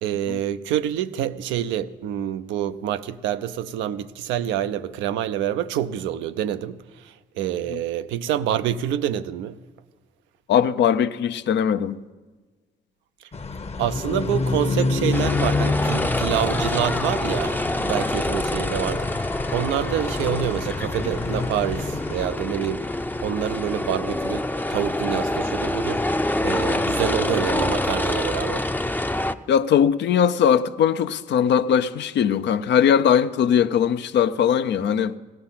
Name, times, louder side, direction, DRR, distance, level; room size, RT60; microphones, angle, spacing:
voice 1, 0.0-9.6 13.8-22.9 23.2-28.7, right 10 dB, 80° right, 0.5 m, -27 dB
voice 2, 10.5-12.0 29.5-35.1, left 8 dB, 65° left, 0.6 m, -20 dB
sound 1, 13.3-22.3, left 3 dB, 35° left, 0.9 m, -28 dB
sound 2, 15.1-29.3, left 1 dB, 10° left, 0.6 m, -26 dB
16.5 x 11.0 x 5.8 m
supercardioid pair, 50°, 19 cm